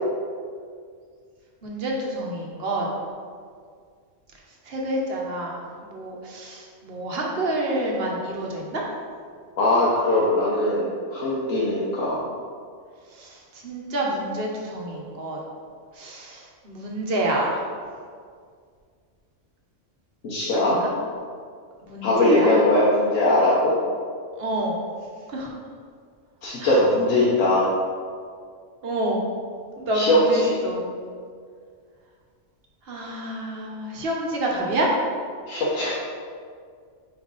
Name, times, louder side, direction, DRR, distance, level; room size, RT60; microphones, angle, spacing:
voice 1, 1.6-2.9 4.7-8.8 13.1-15.4 15.9-17.6 20.5-20.9 21.8-22.6 24.4-24.7 25.3-25.5 26.6-26.7 28.8-29.2 29.8-30.8 32.9-34.9, right 1 dB, 50° right, -2 dB, 1.1 m, -28 dB
voice 2, 9.6-12.2 20.2-20.8 22.0-23.7 26.4-27.7 29.9-30.5 35.5-35.9, left 1 dB, 75° left, -7 dB, 1.3 m, -20 dB
5.2 x 4.5 x 4.0 m, 2.1 s
omnidirectional pair, 1.4 m